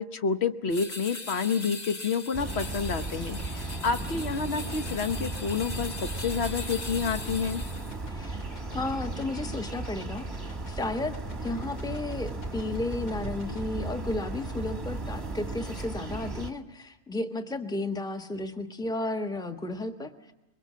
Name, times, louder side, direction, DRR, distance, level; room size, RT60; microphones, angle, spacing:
voice 1, 0.0-7.6, left 5 dB, 50° left, 9 dB, 1.1 m, -29 dB
sound 1, 0.7-8.0, left 3 dB, 30° left, 1.5 m, -40 dB
sound 2, 2.3-16.5, right 2 dB, 15° right, 1.3 m, -36 dB
sound 3, 3.4-13.6, left 2 dB, 80° left, 3.1 m, -50 dB
voice 2, 8.1-8.4 8.7-20.3, left 2 dB, 5° left, 6 dB, 1.1 m, -33 dB
23.0 x 23.0 x 7.5 m, 1.0 s
omnidirectional pair, 1.5 m